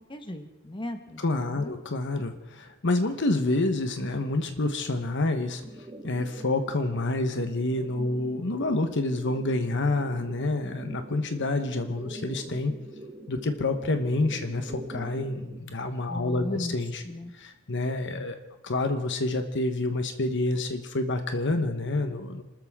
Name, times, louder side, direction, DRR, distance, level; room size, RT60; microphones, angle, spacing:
voice 1, 0.1-1.7 16.1-16.8 17.0-17.3, left 1 dB, 25° left, 6 dB, 1.4 m, -37 dB
voice 2, 1.2-5.6 6.0-12.7 13.3-17.0 17.4-18.4 18.6-22.4, left 2 dB, 60° left, 7 dB, 1.2 m, -28 dB
sound 1, 5.6-15.6, right 1 dB, 20° right, 1.4 m, -44 dB
27.5 x 13.5 x 3.7 m, 0.98 s
head